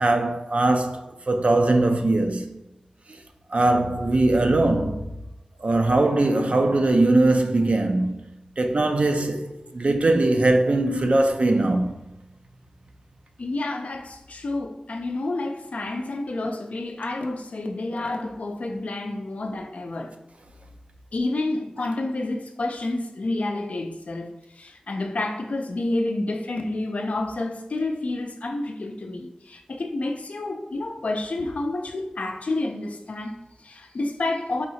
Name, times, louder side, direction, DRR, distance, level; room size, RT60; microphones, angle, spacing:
voice 1, 0.0-2.6 3.5-5.1 5.6-8.2 8.6-11.9, right 2 dB, 65° right, 0.5 m, -21 dB
voice 2, 13.4-20.2 21.1-34.7, left 2 dB, 80° left, 0.5 m, -29 dB
3.5 x 2.7 x 4.1 m
cardioid pair, 40°, 2 cm